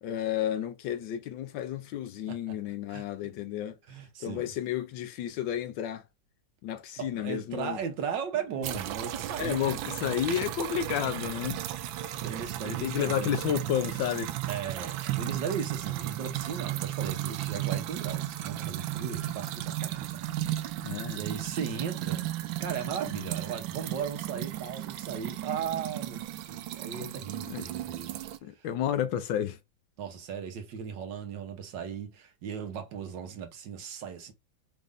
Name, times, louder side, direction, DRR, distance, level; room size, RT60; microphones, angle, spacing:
voice 1, 0.0-3.8 4.2-6.0 6.6-7.8 9.4-11.6 12.6-14.3 20.8-21.2 27.5-27.7 28.4-29.6, left 10 dB, 85° left, 1.4 m, -31 dB
voice 2, 3.9-4.5 7.0-9.7 11.9-13.4 14.5-20.3 21.1-22.3 22.6-28.2 28.6-28.7 30.0-34.3, right 7 dB, 70° right, 1.6 m, -37 dB
sound 1, 8.6-28.4, right 13 dB, 90° right, 1.3 m, -35 dB
5.2 x 2.5 x 3.5 m
omnidirectional pair, 2.0 m